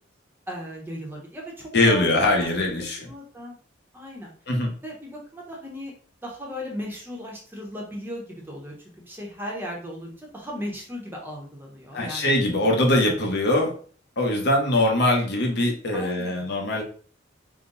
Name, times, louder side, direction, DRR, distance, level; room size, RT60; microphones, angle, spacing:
voice 1, 0.5-2.3 2.6-2.8 3.1-3.6 3.9-4.3 4.8-5.9 6.2-12.3 15.9-16.5, equal, 10° right, -1 dB, 0.9 m, -37 dB
voice 2, 1.7-3.1 4.5-4.7 11.9-13.7 14.2-16.8, left 1 dB, 60° left, 1 dB, 1.0 m, -22 dB
3.8 x 2.2 x 3.9 m, 0.43 s
head